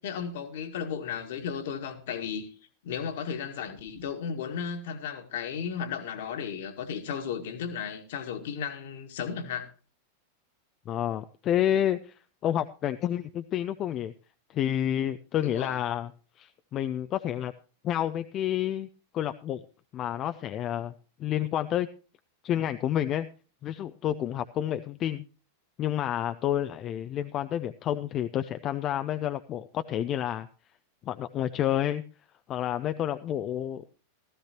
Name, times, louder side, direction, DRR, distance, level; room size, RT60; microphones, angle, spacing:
voice 1, 0.0-2.5 2.8-9.7 15.4-15.8, left 7 dB, 55° left, 1.8 m, -34 dB
voice 2, 10.9-12.1 12.4-14.1 14.5-16.1 16.4-17.5 17.8-18.9 19.1-19.6 19.9-20.9 21.2-21.9 22.4-23.3 23.6-25.2 25.8-30.5 31.0-32.0 32.5-33.8, left 11 dB, 30° left, 0.5 m, -29 dB
15.5 x 14.5 x 2.9 m
figure-of-eight pair, 90°, 0 cm